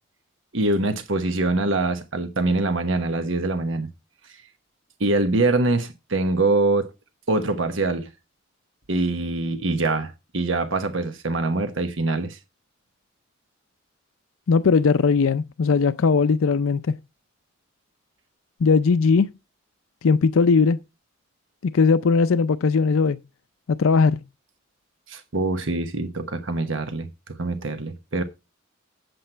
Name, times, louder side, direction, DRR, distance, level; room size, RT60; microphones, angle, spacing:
voice 1, 0.5-3.9 5.0-6.9 7.3-8.1 8.9-12.4 25.1-28.2, right 2 dB, 70° right, 1.2 m, -24 dB
voice 2, 14.5-17.0 18.6-19.3 20.0-20.8 21.7-23.2 23.7-24.2, left 5 dB, 85° left, 0.5 m, -19 dB
8.4 x 7.9 x 4.4 m
head